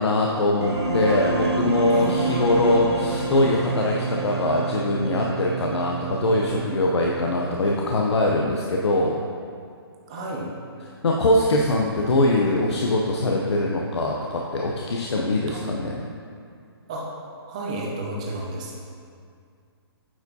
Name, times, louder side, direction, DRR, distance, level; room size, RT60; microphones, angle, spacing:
voice 1, 0.0-9.2 11.0-16.0, left 2 dB, 90° left, -1 dB, 0.7 m, -22 dB
sound 1, 0.6-7.6, right 4 dB, 85° right, 1.2 m, -28 dB
voice 2, 1.9-2.4 10.1-10.5 15.5-15.9 16.9-17.1 17.5-18.8, right 2 dB, 15° right, -2 dB, 0.5 m, -32 dB
8.5 x 4.5 x 2.8 m, 2.3 s
hypercardioid pair, 175°, 14 cm